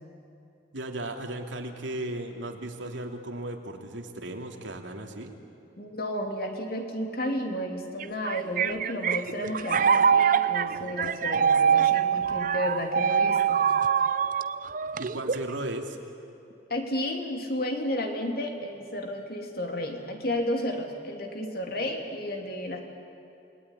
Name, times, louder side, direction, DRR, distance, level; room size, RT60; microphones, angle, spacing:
voice 1, 0.7-5.3 15.0-16.0, right 1 dB, 90° right, 3 dB, 2.9 m, -36 dB
voice 2, 5.8-13.6 16.7-22.8, left 1 dB, 50° left, 3 dB, 3.1 m, -32 dB
sound 1, 8.0-15.5, right 7 dB, 45° right, 0.6 m, -24 dB
29.0 x 20.5 x 10.0 m, 2.8 s
head